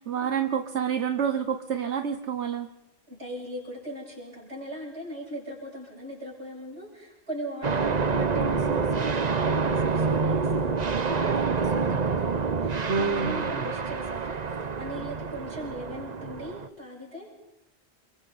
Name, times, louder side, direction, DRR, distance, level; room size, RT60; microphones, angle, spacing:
voice 1, 0.0-2.7 12.9-13.5, right 7 dB, 90° right, 6 dB, 1.4 m, -28 dB
voice 2, 3.1-17.3, equal, 70° right, -3 dB, 8.4 m, -39 dB
sound 1, 7.6-16.7, right 5 dB, 40° right, 1.0 m, -27 dB
30.0 x 23.5 x 4.3 m, 0.86 s
omnidirectional pair, 1.1 m